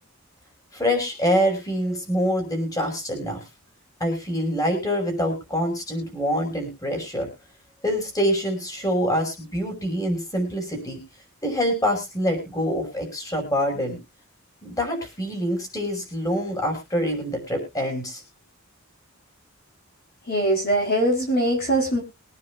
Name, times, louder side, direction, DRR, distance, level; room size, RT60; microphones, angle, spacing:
voice 1, 0.7-3.4 4.0-7.3 7.8-11.0 11.4-14.0 14.6-18.2, equal, 15° left, 3 dB, 5.5 m, -25 dB
voice 2, 20.3-22.0, right 1 dB, 45° left, 1 dB, 3.7 m, -22 dB
23.5 x 9.8 x 2.4 m, 0.28 s
head